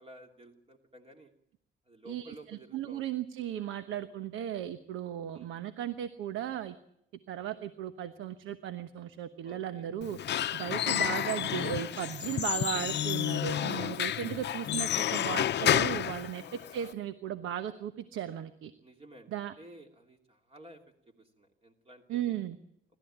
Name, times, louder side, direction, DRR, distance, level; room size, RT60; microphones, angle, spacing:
voice 1, 0.0-1.3 1.9-3.1 3.8-3.9 5.3-5.5 9.4-9.9 10.4-10.6 13.6-14.2 16.3-16.6 18.8-20.8 21.2-22.3, right 1 dB, 30° right, 3 dB, 2.8 m, -54 dB
voice 2, 2.1-6.7 7.3-10.2 10.5-18.7 19.3-19.5 22.1-22.6, right 10 dB, 85° right, 11 dB, 1.1 m, -36 dB
Squeak / Wood, 10.0-16.9, left 11 dB, 60° left, 0.7 m, -30 dB
25.5 x 13.0 x 8.8 m, 0.77 s
cardioid pair, 90°, 20 cm